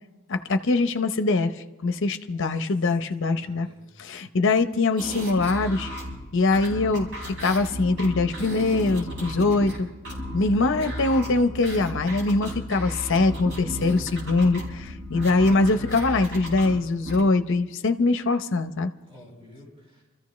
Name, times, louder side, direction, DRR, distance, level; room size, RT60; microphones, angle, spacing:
voice 1, 0.3-1.5 1.8-3.7 4.0-5.9 6.3-7.1 7.4-9.9 10.3-18.9, left 3 dB, 60° left, 9 dB, 0.8 m, -23 dB
voice 2, 3.2-3.8 10.7-11.4 19.1-20.0, left 1 dB, 25° right, -5 dB, 5.5 m, -47 dB
sound 1, 5.0-17.3, equal, 55° right, 4.8 m, -35 dB
27.0 x 14.0 x 3.2 m, 1.1 s
head